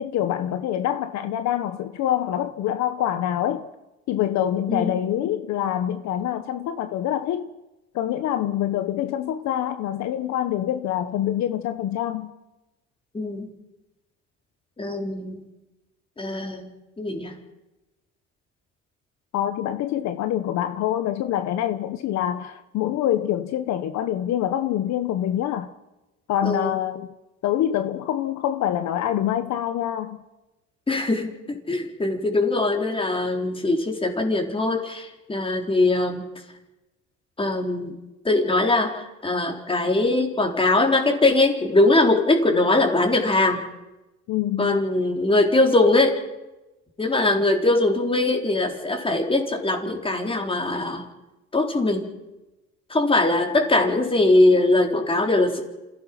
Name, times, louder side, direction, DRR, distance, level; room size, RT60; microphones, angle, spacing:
voice 1, 0.0-3.7 4.1-7.5 7.9-12.3 19.3-25.7 26.3-27.1 27.4-30.2 44.3-44.8, left 11 dB, 65° left, 1.2 m, -25 dB
voice 2, 4.7-5.0 13.1-13.5 14.8-15.5 16.2-17.4 26.4-26.8 30.9-36.3 37.4-38.0 38.2-43.6 44.6-46.2 47.0-51.0 51.5-52.1 52.9-55.6, left 2 dB, 15° left, 3.9 m, -21 dB
27.5 x 16.0 x 6.0 m
cardioid pair, 105°, 30 cm